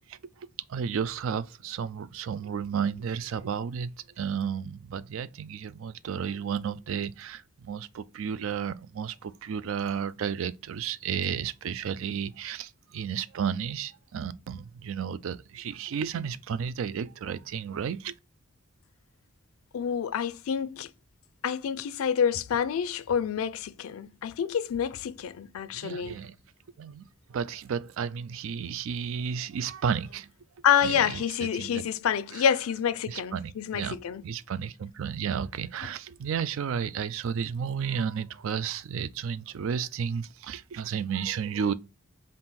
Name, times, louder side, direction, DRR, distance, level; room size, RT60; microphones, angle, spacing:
voice 1, 0.7-3.9 4.2-18.1 25.7-26.3 26.8-30.3 30.8-31.2 31.5-31.8 32.3-32.4 33.1-34.0 34.2-41.7, right 7 dB, 70° right, 0.3 m, -32 dB
voice 2, 19.7-20.9 21.4-26.2 30.6-34.2, left 8 dB, 80° left, 0.4 m, -28 dB
3.7 x 2.5 x 4.0 m
head